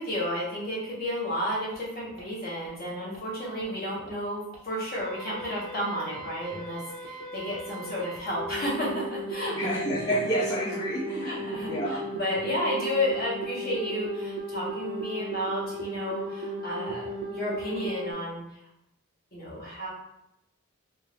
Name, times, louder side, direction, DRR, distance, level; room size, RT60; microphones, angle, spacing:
voice 1, 0.0-9.7 11.2-18.4 19.3-19.9, left 1 dB, 45° left, -7 dB, 1.2 m, -32 dB
sound 1, 1.7-1.8 2.2-2.3 2.6-2.7 3.1-3.2 3.6-3.7 4.1-4.2 4.5-4.6 5.0-18.1, right 1 dB, 60° right, 0.8 m, -36 dB
voice 2, 9.5-12.0, equal, 15° left, -8 dB, 0.5 m, -29 dB
2.8 x 2.4 x 3.3 m, 0.82 s
head